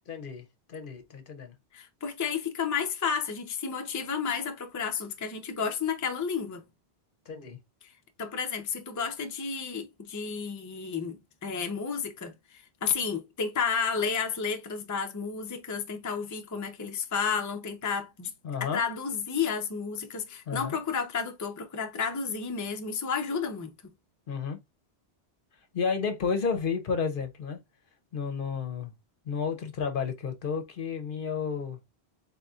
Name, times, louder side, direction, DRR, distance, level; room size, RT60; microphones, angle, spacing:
voice 1, 0.1-1.5 7.3-7.6 18.4-18.8 20.5-20.8 24.3-24.6 25.7-27.6 28.1-28.9 29.3-31.8, left 5 dB, 60° left, 0.8 m, -32 dB
voice 2, 1.7-6.6 7.8-7.9 8.2-18.3 18.6-23.7, left 6 dB, 20° left, 0.5 m, -32 dB
4.1 x 3.6 x 2.3 m
omnidirectional pair, 1.1 m